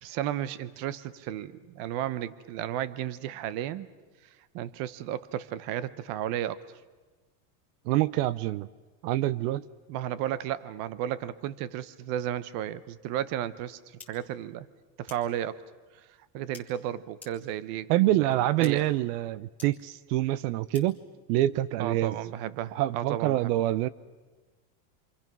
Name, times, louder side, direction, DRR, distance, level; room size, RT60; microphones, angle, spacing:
voice 1, 0.0-3.9 4.5-6.6 9.9-14.7 15.0-15.6 15.9-16.1 16.3-18.8 21.8-23.5, right 11 dB, 45° right, 17 dB, 0.8 m, -33 dB
voice 2, 7.9-8.7 9.0-9.6 17.9-21.0 21.3-22.2 22.7-23.9, right 15 dB, 75° right, 19 dB, 0.8 m, -26 dB
sound 1, 14.0-14.1 15.1-15.2 16.5-16.6 17.2-17.3 18.3-18.4 18.6-18.7 19.6-19.7 20.7-20.8, left 5 dB, 5° left, 2.9 m, -46 dB
28.0 x 25.5 x 6.1 m, 1.3 s
cardioid pair, 175°, 47 cm